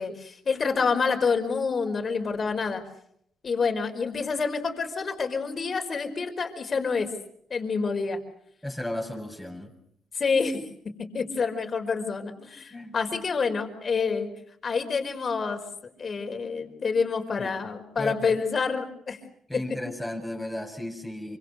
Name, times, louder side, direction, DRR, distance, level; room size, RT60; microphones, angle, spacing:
voice 1, 0.0-2.8 3.4-7.1 7.5-8.2 10.1-10.6 11.1-14.3 14.6-15.6 16.0-19.2 19.5-19.6, left 5 dB, 40° left, 5 dB, 5.2 m, -27 dB
voice 2, 8.6-9.7 12.7-12.9 17.4-17.5 18.0-18.1 19.5-21.4, left 1 dB, 5° left, 0 dB, 7.9 m, -34 dB
27.0 x 26.0 x 6.6 m, 0.70 s
cardioid pair, 90°, 0 cm